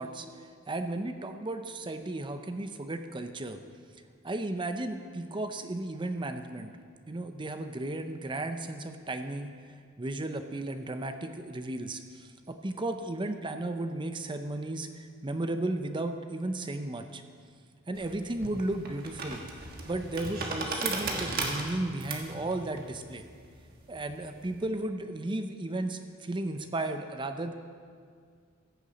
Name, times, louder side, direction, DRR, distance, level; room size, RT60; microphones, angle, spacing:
voice 1, 0.0-3.6 4.2-6.7 7.1-9.6 10.0-17.2 17.9-19.4 19.9-23.3 23.9-27.5, right 2 dB, 25° right, 8 dB, 0.6 m, -34 dB
sound 1, 17.9-24.6, right 3 dB, 45° right, 1.4 m, -36 dB
15.0 x 6.9 x 5.1 m, 2.1 s
head